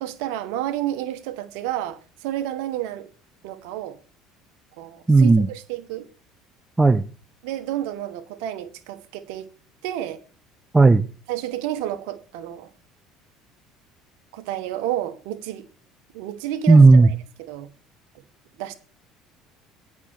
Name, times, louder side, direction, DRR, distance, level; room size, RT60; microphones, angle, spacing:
voice 1, 0.0-3.1 3.4-4.0 4.8-6.1 7.4-9.5 9.8-10.2 11.3-12.7 14.3-15.6 16.1-17.7 18.6-18.7, right 12 dB, 75° right, 1.1 m, -30 dB
voice 2, 5.1-5.5 6.8-7.1 10.7-11.0 16.7-17.1, right 3 dB, 15° right, 0.7 m, -13 dB
8.6 x 5.9 x 6.9 m
hypercardioid pair, 75°, 0 cm